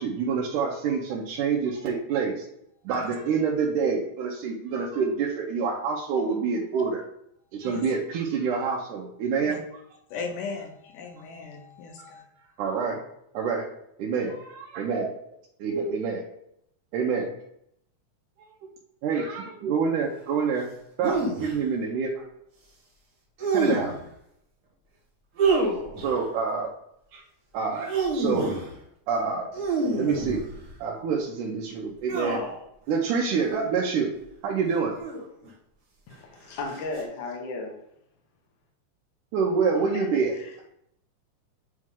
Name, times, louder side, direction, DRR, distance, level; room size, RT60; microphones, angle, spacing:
voice 1, 0.0-2.5 2.9-7.0 7.5-9.8 12.6-13.0 13.3-13.7 14.0-15.1 15.6-16.2 16.9-17.3 18.4-18.5 19.0-20.7 21.0-22.1 23.5-24.0 26.0-26.7 27.1-27.2 27.5-28.6 29.1-29.5 30.0-30.4 30.8-32.4 32.9-34.1 34.4-34.9 39.3-40.6, right 5 dB, 85° right, -2 dB, 2.3 m, -27 dB
voice 2, 10.1-12.2, left 4 dB, 85° left, 2 dB, 2.5 m, -37 dB
sound 1, 21.0-21.5 23.4-24.0 25.4-26.2 27.7-28.7 29.5-30.7 32.1-32.6 33.4-33.7 34.9-35.5 36.7-37.0, right 3 dB, 40° right, 1.6 m, -27 dB
voice 3, 36.1-37.7 39.9-40.1 40.4-40.6, left 3 dB, 60° left, -1 dB, 1.3 m, -35 dB
8.5 x 3.2 x 3.6 m, 0.75 s
omnidirectional pair, 3.5 m